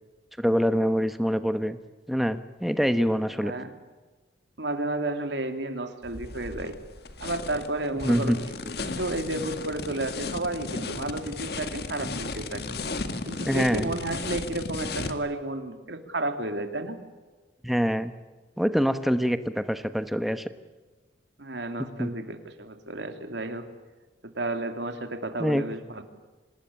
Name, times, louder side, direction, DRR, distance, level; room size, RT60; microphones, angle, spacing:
voice 1, 0.4-1.8 2.1-3.5 8.0-8.4 13.5-13.9 17.6-18.1 18.6-20.5 22.0-22.1 25.4-25.6, equal, ahead, 10 dB, 1.1 m, -25 dB
voice 2, 3.4-3.7 4.6-6.7 7.2-8.4 8.6-12.6 13.3-17.0 21.4-23.7 24.2-26.0, right 2 dB, 75° right, 7 dB, 2.8 m, -32 dB
sound 1, 6.0-15.1, left 3 dB, 60° left, 1.9 m, -35 dB
26.5 x 19.5 x 8.7 m, 1.3 s
head